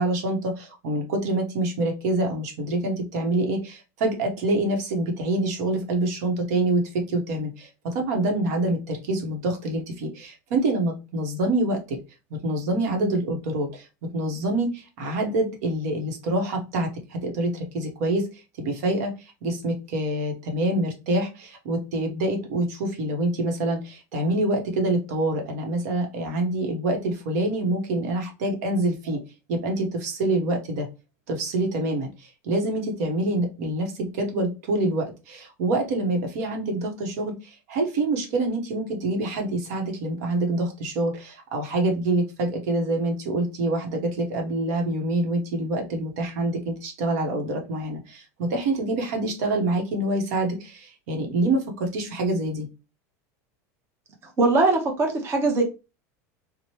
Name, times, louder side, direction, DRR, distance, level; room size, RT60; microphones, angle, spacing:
voice 1, 0.0-12.0 12.3-13.9 14.1-29.2 29.5-30.9 31.3-52.7, right 2 dB, 75° right, 2 dB, 0.9 m, -26 dB
voice 2, 54.4-55.6, right 3 dB, 30° right, 2 dB, 0.7 m, -21 dB
2.9 x 2.1 x 3.0 m, 0.28 s
supercardioid pair, 135°, 9 cm